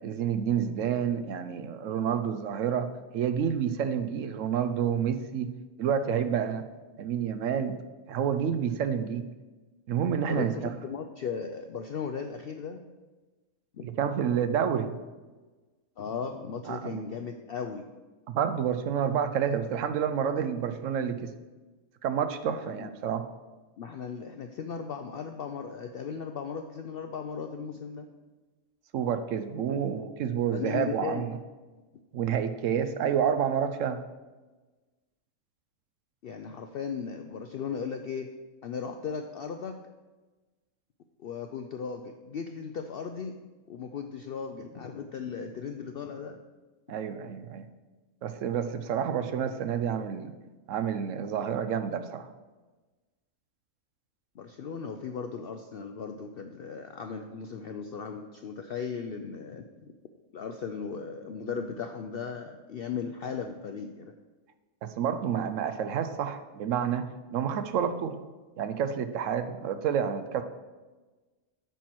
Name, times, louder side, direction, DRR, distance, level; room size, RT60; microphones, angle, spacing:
voice 1, 0.0-5.5 5.8-6.6 7.0-7.8 8.1-9.3 9.9-10.7 13.8-15.0 16.7-17.0 18.3-21.3 22.0-23.3 28.9-31.4 32.1-34.0 46.9-47.6 48.2-50.3 50.7-52.3 64.8-68.2 68.6-70.4, right 8 dB, 70° right, 10 dB, 0.9 m, -29 dB
voice 2, 10.3-12.8 13.7-13.9 16.0-17.9 22.8-22.9 23.8-28.1 29.7-29.8 30.5-31.4 36.2-38.3 38.6-39.8 41.2-43.4 43.7-46.4 54.4-59.6 60.3-64.1, left 6 dB, 70° left, 6 dB, 0.5 m, -37 dB
9.1 x 4.4 x 6.1 m, 1.2 s
omnidirectional pair, 1.5 m